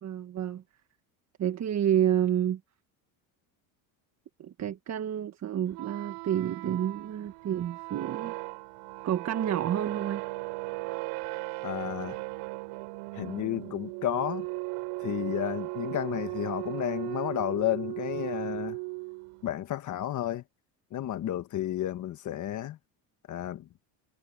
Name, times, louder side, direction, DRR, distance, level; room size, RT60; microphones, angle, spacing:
voice 1, 0.0-0.6 1.4-2.6 4.4-8.3 9.0-10.2, right 10 dB, 40° right, 1.7 m, -29 dB
sound 1, 5.7-19.4, right 28 dB, 80° right, 7.7 m, -37 dB
voice 2, 11.6-12.2 13.1-14.5 15.0-18.8 19.4-20.4 20.9-22.8 23.3-23.7, left 12 dB, 45° left, 1.5 m, -32 dB
cardioid pair, 115°, 40 cm